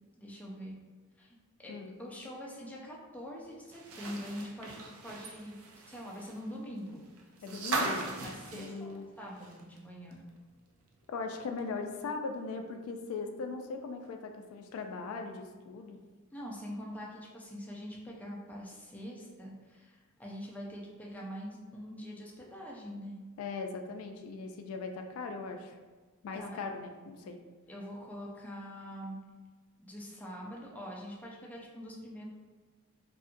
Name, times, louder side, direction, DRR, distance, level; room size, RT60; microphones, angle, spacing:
voice 1, 0.2-0.8 1.2-1.7 2.0-4.8 5.0-5.6 5.9-7.0 7.7-10.2 16.3-23.2 26.3-26.6 27.7-29.2 29.8-32.3, equal, 5° left, -4 dB, 0.4 m, -44 dB
sound 1, 3.7-9.8 10.1-10.2 11.6-11.7, right 3 dB, 85° right, 0.5 m, -39 dB
voice 2, 7.4-8.0 8.5-9.0 11.1-16.0 23.4-25.8 26.2-27.4, left 4 dB, 80° left, 9 dB, 0.3 m, -39 dB
2.7 x 2.5 x 2.5 m, 1.3 s
head